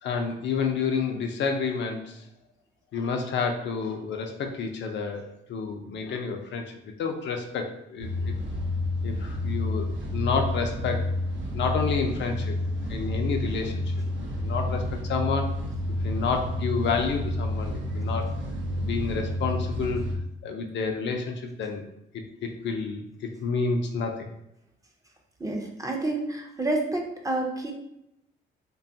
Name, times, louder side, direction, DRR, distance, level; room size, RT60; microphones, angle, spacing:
voice 1, 0.0-2.2 2.9-6.7 7.0-8.3 9.0-11.0 11.5-12.6 12.9-13.9 14.4-15.5 16.0-18.2 18.8-20.0 20.4-21.8 22.1-24.3, left 5 dB, 65° left, 3 dB, 0.5 m, -29 dB
sound 1, 8.0-20.1, left 1 dB, 75° right, 0.7 m, -29 dB
voice 2, 25.4-27.7, right 2 dB, 15° right, 1 dB, 0.5 m, -29 dB
2.7 x 2.3 x 2.6 m, 0.81 s
cardioid pair, 90°, 20 cm